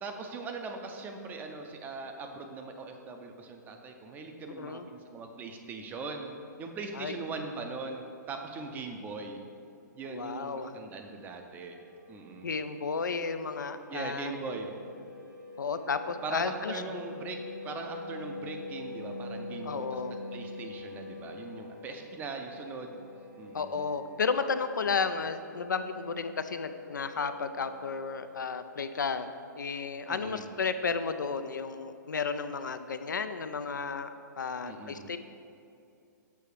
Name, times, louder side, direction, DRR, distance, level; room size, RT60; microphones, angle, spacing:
voice 1, 0.0-6.3 6.6-9.4 9.9-11.8 12.1-12.5 13.9-14.7 16.2-23.0 23.4-23.8 30.1-30.5 34.6-35.1, right 3 dB, 20° right, 4 dB, 0.5 m, -40 dB
voice 2, 10.0-10.8 12.4-14.4 15.6-16.8 19.6-20.2 23.5-34.1 34.4-35.2, left 5 dB, 75° left, 10 dB, 0.4 m, -33 dB
sound 1, 11.2-28.6, left 2 dB, 90° right, 1.2 m, -45 dB
6.8 x 4.5 x 4.8 m, 2.5 s
figure-of-eight pair, 115°, 10 cm